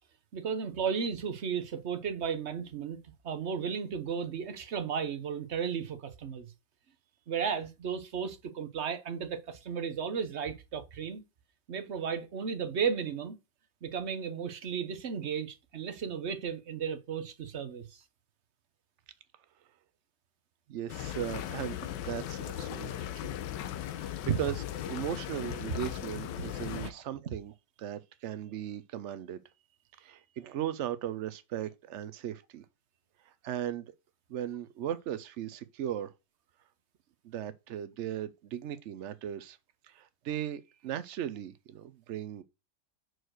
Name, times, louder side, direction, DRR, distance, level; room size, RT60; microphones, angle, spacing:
voice 1, 0.3-3.0 3.2-6.5 7.3-11.2 11.7-13.4 13.8-18.0 26.7-26.9, right 6 dB, 45° right, 1.1 m, -34 dB
voice 2, 20.7-23.3 23.9-24.1 24.4-27.5 27.8-29.4 29.9-32.7 33.2-33.9 34.3-36.1 37.2-39.6 39.8-42.4, right 11 dB, 75° right, 0.6 m, -37 dB
sound 1, 20.9-26.9, left 12 dB, 85° left, 1.4 m, -38 dB
6.3 x 4.7 x 6.4 m
omnidirectional pair, 1.9 m